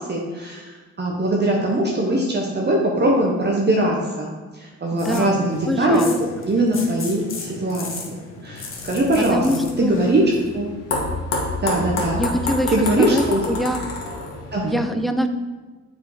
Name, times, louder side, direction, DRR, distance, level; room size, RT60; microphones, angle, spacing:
voice 1, 0.0-4.3 4.6-6.0 6.5-10.2 10.5-10.7 11.6-12.2 12.7-13.4 14.5-14.8, right 1 dB, 35° right, -2 dB, 1.2 m, -21 dB
voice 2, 4.9-6.2 9.2-10.0 11.8-13.8 14.6-15.3, equal, ahead, 7 dB, 0.5 m, -25 dB
sound 1, 5.0-10.4, left 4 dB, 45° left, 1.4 m, -36 dB
sound 2, 8.7-14.7, left 2 dB, 60° left, 2.0 m, -28 dB
6.8 x 5.0 x 5.0 m, 1.3 s
cardioid pair, 90°, 30 cm